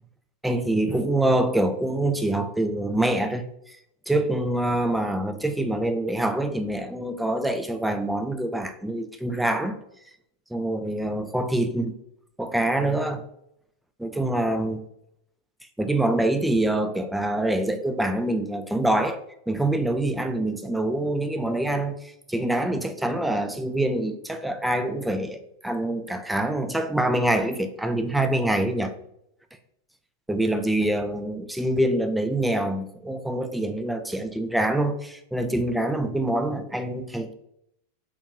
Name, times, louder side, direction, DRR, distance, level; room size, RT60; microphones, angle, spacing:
voice 1, 0.4-3.8 4.1-9.8 10.5-12.0 12.4-13.2 14.0-14.8 15.8-19.2 19.5-28.9 30.3-37.3, right 1 dB, 5° right, 7 dB, 0.3 m, -25 dB
4.4 x 2.7 x 2.5 m, 0.76 s
figure-of-eight pair, 90°, 0 cm